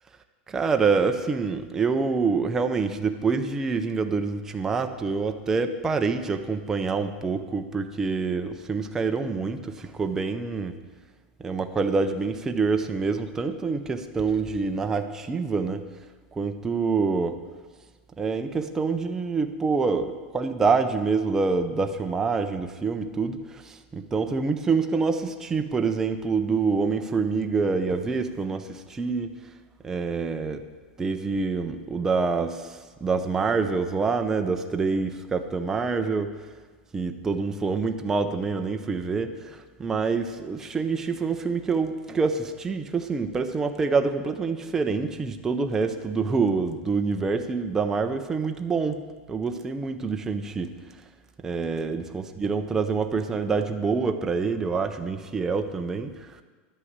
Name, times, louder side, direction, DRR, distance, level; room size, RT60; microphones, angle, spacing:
voice 1, 0.5-10.8 11.4-15.8 16.3-17.4 18.2-29.3 29.8-30.6 31.0-36.3 36.9-49.0 49.3-50.8 51.4-56.1, right 4 dB, 5° right, 6 dB, 0.4 m, -26 dB
11.0 x 5.9 x 7.9 m, 1.4 s
supercardioid pair, 180°, 7 cm